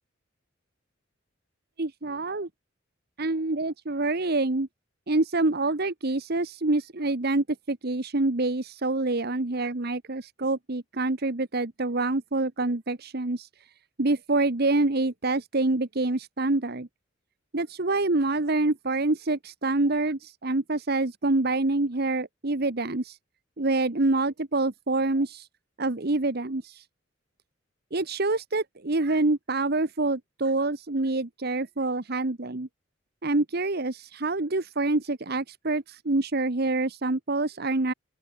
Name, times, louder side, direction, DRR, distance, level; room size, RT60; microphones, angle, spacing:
voice 1, 1.8-2.5 3.2-4.7 5.1-13.5 14.0-16.9 17.5-23.2 23.6-25.5 25.8-26.8 27.9-32.7 33.2-37.9, right 2 dB, 55° right, 1.3 m, -26 dB
open air
head